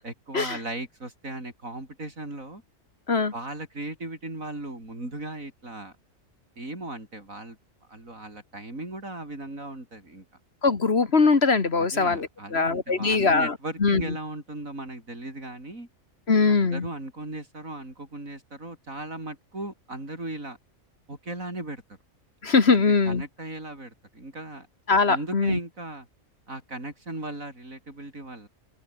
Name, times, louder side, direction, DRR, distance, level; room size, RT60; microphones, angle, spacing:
voice 1, 0.0-2.6 3.3-5.9 6.6-7.6 7.9-10.3 11.8-15.9 16.5-20.6 21.1-21.8 22.7-24.7 25.1-26.1 26.5-28.5, right 2 dB, 85° right, 7.2 m, -37 dB
voice 2, 10.6-14.2 16.3-16.9 22.4-23.2 24.9-25.6, left 4 dB, 50° left, 2.0 m, -22 dB
omnidirectional pair, 1.4 m